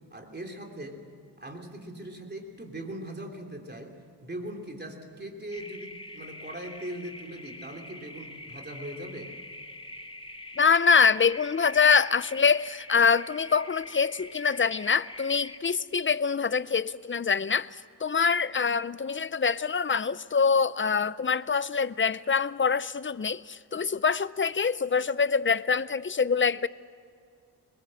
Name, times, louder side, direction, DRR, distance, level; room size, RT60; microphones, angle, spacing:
voice 1, 0.1-1.0 1.4-3.9 4.2-9.3, right 1 dB, 25° right, 3.1 m, -40 dB
sound 1, 5.5-15.6, left 1 dB, 10° left, 1.6 m, -44 dB
voice 2, 10.6-17.7 18.0-26.7, left 5 dB, 30° left, 0.5 m, -24 dB
23.0 x 21.5 x 7.7 m
wide cardioid pair, 100°, 43 cm